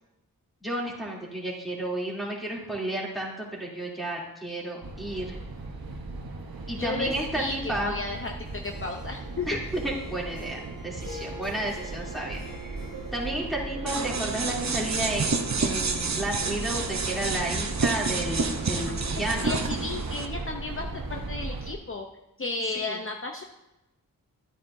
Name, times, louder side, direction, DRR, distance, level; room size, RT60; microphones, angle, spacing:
voice 1, 0.6-5.4 6.7-8.0 9.5-9.6 9.8-19.6 22.7-23.0, right 1 dB, ahead, -3 dB, 3.0 m, -32 dB
sound 1, 4.8-21.7, right 2 dB, 80° right, 1.1 m, -37 dB
voice 2, 6.8-9.6 19.4-22.1 22.4-23.4, left 3 dB, 35° left, 3 dB, 0.7 m, -33 dB
Harp, 8.4-14.8, left 1 dB, 80° left, 2.8 m, -47 dB
sound 2, 13.9-20.3, right 4 dB, 50° right, 0.8 m, -29 dB
12.0 x 9.4 x 2.7 m, 0.96 s
wide cardioid pair, 50°, 35 cm